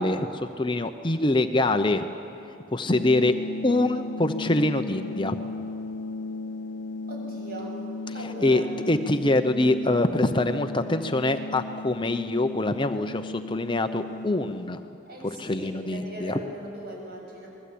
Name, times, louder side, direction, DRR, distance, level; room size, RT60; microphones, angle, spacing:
voice 1, 0.0-2.1 2.7-3.4 3.6-5.4 8.2-14.8 15.2-16.4, left 2 dB, 25° left, 8 dB, 0.7 m, -24 dB
sound 1, 2.9-14.8, left 3 dB, 60° left, 0.8 m, -36 dB
voice 2, 7.1-7.8 8.1-8.7 15.0-17.5, right 1 dB, 50° right, -1 dB, 7.7 m, -39 dB
28.5 x 21.0 x 8.6 m, 2.9 s
head